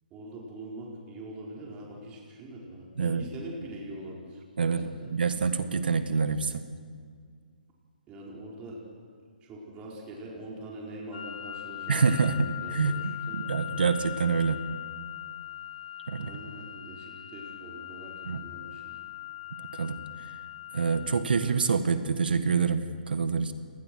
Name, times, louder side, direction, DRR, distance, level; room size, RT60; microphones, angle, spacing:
voice 1, 0.1-5.1 8.1-8.8 9.4-13.4 16.2-18.1 18.4-19.0, right 1 dB, 20° right, -3 dB, 4.5 m, -43 dB
voice 2, 4.6-6.6 11.9-14.6 16.1-16.3 18.2-18.4 19.7-20.0 20.7-23.5, right 5 dB, 75° right, 10 dB, 1.7 m, -26 dB
sound 1, 11.1-21.2, left 14 dB, 55° left, 3.2 m, -40 dB
28.0 x 19.5 x 6.3 m, 2.1 s
hypercardioid pair, 150°, 5 cm